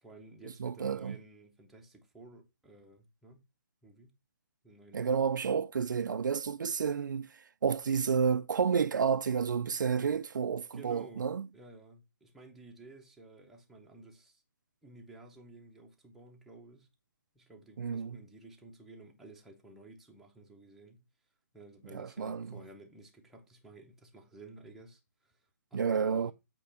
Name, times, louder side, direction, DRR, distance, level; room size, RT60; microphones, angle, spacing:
voice 1, 0.0-3.4 3.8-4.1 4.6-5.4 10.7-11.2 11.5-14.4 14.8-16.9 17.3-21.0 21.5-26.3, right 2 dB, ahead, 0.7 m, -54 dB
voice 2, 0.6-1.2 4.9-7.3 7.6-11.5 17.8-18.2 21.9-22.5 25.7-26.3, right 6 dB, 70° right, 0.4 m, -30 dB
8.5 x 3.0 x 5.7 m
hypercardioid pair, 170°, 11 cm